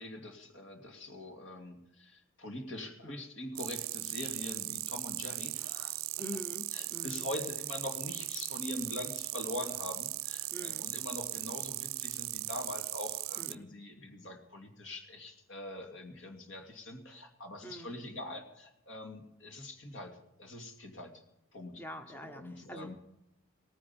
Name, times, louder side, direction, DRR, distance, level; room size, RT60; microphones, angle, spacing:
voice 1, 0.0-6.1 6.7-21.2 21.5-21.8 22.1-23.0, left 1 dB, 70° left, 4 dB, 2.6 m, -43 dB
sound 1, 3.6-13.6, right 18 dB, 85° right, 0.5 m, -38 dB
voice 2, 6.2-7.3 10.5-10.9 13.4-13.7 17.6-17.9 21.8-22.9, equal, 10° left, 7 dB, 0.8 m, -45 dB
18.0 x 10.0 x 7.0 m, 0.80 s
head